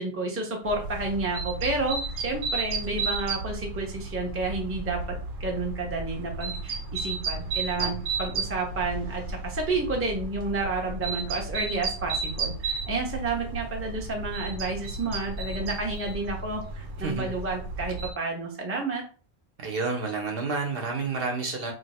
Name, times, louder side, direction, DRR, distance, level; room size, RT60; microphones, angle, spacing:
voice 1, 0.0-19.0, right 3 dB, 15° right, 0 dB, 0.6 m, -30 dB
sound 1, 0.6-18.1, right 3 dB, 90° right, 1.0 m, -33 dB
voice 2, 17.0-17.4 19.6-21.7, right 4 dB, 60° right, 2 dB, 0.9 m, -30 dB
2.7 x 2.1 x 4.0 m, 0.37 s
omnidirectional pair, 1.2 m